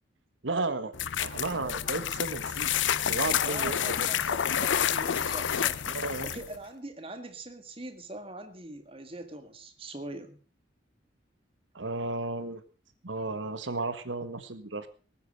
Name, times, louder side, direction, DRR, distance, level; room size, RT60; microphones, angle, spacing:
voice 1, 0.4-0.9 1.2-2.7 3.1-4.1 5.8-6.3 11.7-12.6 13.0-14.9, right 3 dB, 85° right, 11 dB, 1.5 m, -33 dB
sound 1, 0.9-6.5, left 9 dB, 85° left, 0.6 m, -29 dB
voice 2, 3.4-5.8 6.2-10.4, right 1 dB, 30° right, 6 dB, 1.8 m, -42 dB
19.0 x 9.2 x 5.3 m, 0.38 s
head